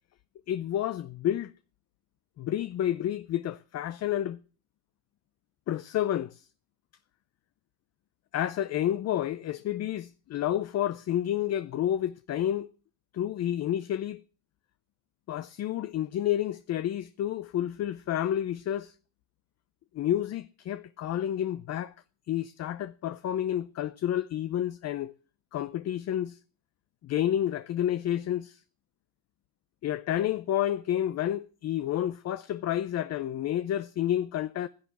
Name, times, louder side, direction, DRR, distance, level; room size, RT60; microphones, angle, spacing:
voice 1, 0.5-1.5 2.4-4.4 5.7-6.5 8.3-12.7 13.1-14.2 15.3-18.9 19.9-21.9 22.3-25.1 25.5-26.4 27.0-28.6 29.8-34.7, left 11 dB, 35° left, 0.6 m, -30 dB
10.5 x 9.8 x 8.1 m
supercardioid pair, 105°, 45 cm